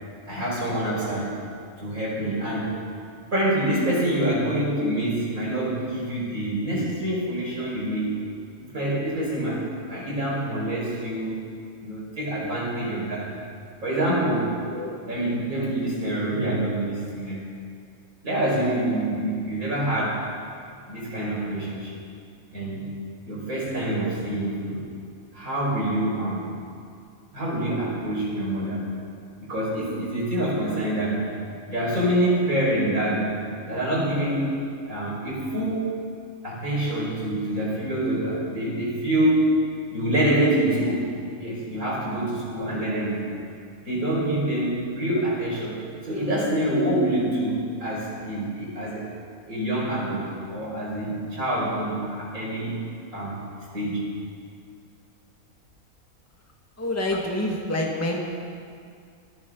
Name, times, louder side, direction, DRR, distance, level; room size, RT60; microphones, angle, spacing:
voice 1, 0.3-1.4 1.8-2.8 3.3-8.2 8.7-11.4 11.8-13.3 13.8-14.6 15.0-17.5 18.2-20.3 20.9-22.0 22.5-22.9 23.3-24.8 25.3-26.6 27.3-29.0 29.5-31.3 31.7-35.9 36.4-41.1 41.4-43.3 43.9-49.1 49.5-52.9 53.1-53.5 53.7-54.1, right 1 dB, 70° right, -5 dB, 5.6 m, -26 dB
voice 2, 56.8-58.2, left 1 dB, 10° left, -1 dB, 1.6 m, -27 dB
25.0 x 15.0 x 3.8 m, 2.3 s
omnidirectional pair, 1.5 m